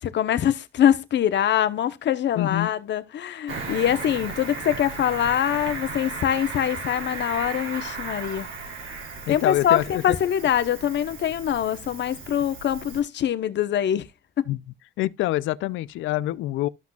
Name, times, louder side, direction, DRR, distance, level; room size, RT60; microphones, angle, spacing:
voice 1, 0.0-8.5 9.3-14.1 14.4-14.5, left 10 dB, 65° left, 0.9 m, -24 dB
voice 2, 2.3-2.7 9.3-10.2 14.5-14.6 15.0-16.7, left 15 dB, 80° left, 0.4 m, -26 dB
Cricket, 3.5-13.0, right 4 dB, 80° right, 2.9 m, -36 dB
13.5 x 5.9 x 2.3 m
cardioid pair, 90°, 20 cm